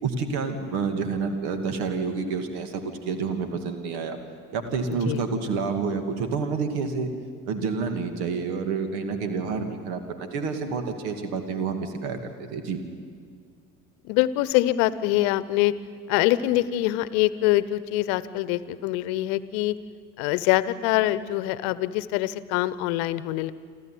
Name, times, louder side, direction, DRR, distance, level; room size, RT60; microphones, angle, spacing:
voice 1, 0.0-4.2 4.5-7.1 7.5-12.8, right 5 dB, 60° right, 7 dB, 2.5 m, -29 dB
voice 2, 14.0-15.7 16.1-19.8 20.2-23.5, left 15 dB, 60° left, 17 dB, 1.0 m, -24 dB
28.0 x 12.5 x 9.4 m, 2.1 s
figure-of-eight pair, 60°, 45 cm